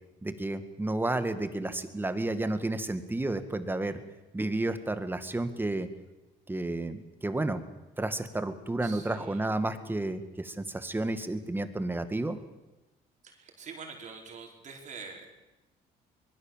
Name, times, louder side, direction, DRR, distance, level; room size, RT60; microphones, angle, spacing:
voice 1, 0.2-4.0 4.3-5.9 6.5-7.6 8.0-12.4, right 2 dB, 10° right, 9 dB, 2.0 m, -31 dB
voice 2, 8.8-9.5 13.2-15.3, right 5 dB, 45° right, 2 dB, 4.8 m, -45 dB
24.0 x 22.0 x 7.5 m, 1.0 s
cardioid pair, 110°, 17 cm